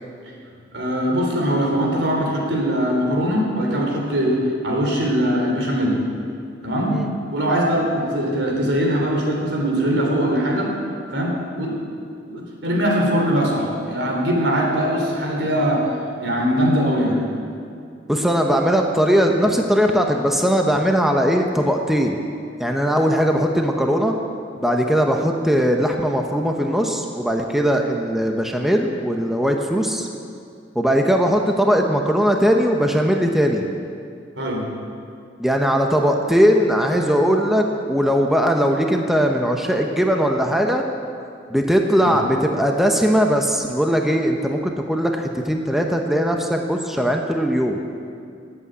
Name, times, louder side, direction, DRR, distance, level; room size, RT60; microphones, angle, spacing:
voice 1, 0.7-6.0 6.6-7.0 7.3-10.7 11.1-11.7 12.3-17.2 34.4-34.7 42.0-42.1, equal, 80° right, -1 dB, 3.8 m, -21 dB
voice 2, 18.1-22.2 22.6-24.1 24.6-30.1 30.7-33.6 35.4-40.8 41.5-47.8, equal, ahead, 2 dB, 0.9 m, -19 dB
19.0 x 8.6 x 8.1 m, 2.4 s
head